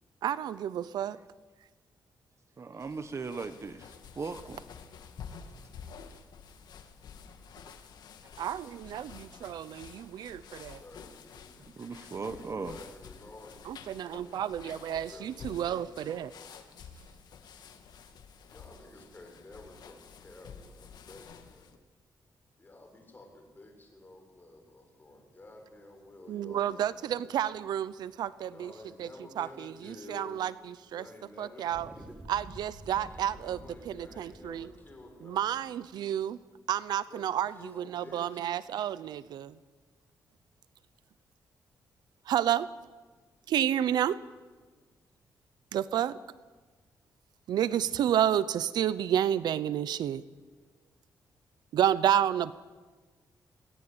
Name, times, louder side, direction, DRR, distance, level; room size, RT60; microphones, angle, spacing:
voice 1, 0.2-1.2 8.4-10.8 13.7-16.3 26.3-28.7 29.0-29.1 29.4-31.0 31.4-31.9 32.3-33.6 33.9-34.7 35.2-36.4 36.7-39.6 42.2-42.7 43.5-44.2 45.7-46.2 47.5-50.2 51.7-52.5, right 10 dB, 85° right, 17 dB, 0.7 m, -30 dB
voice 2, 2.6-4.6 8.2-8.3 11.8-12.8, right 4 dB, 45° right, 10 dB, 1.3 m, -38 dB
sound 1, 2.8-21.8, left 6 dB, 80° left, 2.0 m, -50 dB
voice 3, 10.7-11.9 12.3-14.4 14.7-16.5 18.5-21.7 22.6-27.1 28.5-30.4 30.9-31.7 32.9-35.6 37.1-38.5, left 2 dB, 25° left, 2 dB, 7.1 m, -51 dB
sound 2, 31.7-36.4, right 1 dB, 15° right, 4.6 m, -50 dB
21.5 x 18.5 x 8.8 m, 1.3 s
cardioid pair, 85°, 7 cm